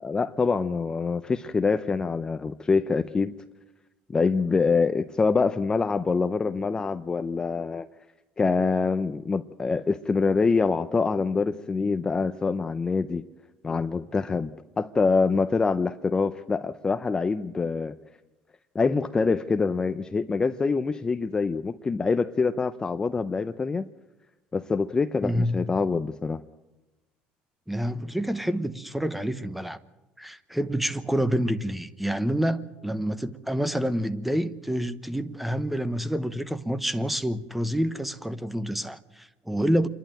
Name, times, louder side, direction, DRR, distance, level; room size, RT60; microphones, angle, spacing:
voice 1, 0.0-3.4 4.1-7.9 8.4-13.2 13.6-14.5 14.8-18.0 18.7-23.9 24.5-26.4, left 4 dB, 20° left, 10 dB, 0.6 m, -25 dB
voice 2, 25.2-25.6 27.7-29.8 30.2-39.9, equal, 5° right, 14 dB, 1.0 m, -28 dB
27.5 x 11.5 x 9.1 m, 1.1 s
cardioid pair, 115°, 4 cm